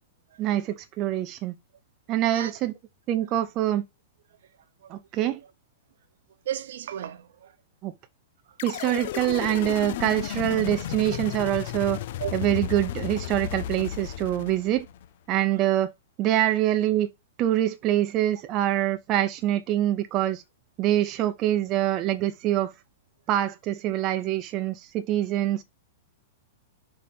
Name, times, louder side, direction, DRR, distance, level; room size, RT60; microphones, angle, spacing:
voice 1, 0.4-1.5 2.1-2.7 3.1-3.8 4.9-5.4 7.8-7.9 8.6-12.0 12.3-14.9 15.3-15.9 16.2-17.1 17.4-20.4 20.8-22.7 23.3-25.6, right 13 dB, 30° right, 0.6 m, -25 dB
voice 2, 6.4-7.6 8.4-8.6 8.9-9.0 11.2-11.3 12.2-12.3 15.5-15.7, right 11 dB, 70° right, 0.9 m, -36 dB
sound 1, 8.6-15.1, left 12 dB, 55° left, 0.5 m, -33 dB
5.1 x 4.4 x 4.2 m
hypercardioid pair, 150°, 0 cm